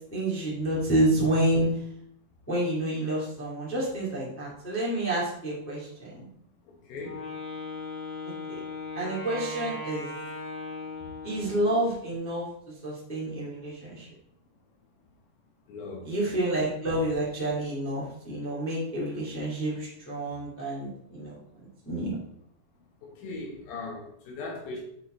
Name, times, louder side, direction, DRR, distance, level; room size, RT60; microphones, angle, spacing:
voice 1, 0.1-1.7 2.5-6.3 8.5-8.6 8.9-10.1 11.2-12.5 12.8-14.1 16.0-21.4 21.8-22.1, right 1 dB, 5° left, -6 dB, 1.2 m, -29 dB
voice 2, 6.9-7.3 15.7-16.1 23.0-24.8, left 3 dB, 85° left, -2 dB, 2.9 m, -38 dB
Wind instrument woodwind instrument, 7.0-11.9, left 2 dB, 50° left, 2.5 m, -38 dB
7.5 x 4.3 x 3.8 m, 0.71 s
omnidirectional pair, 4.1 m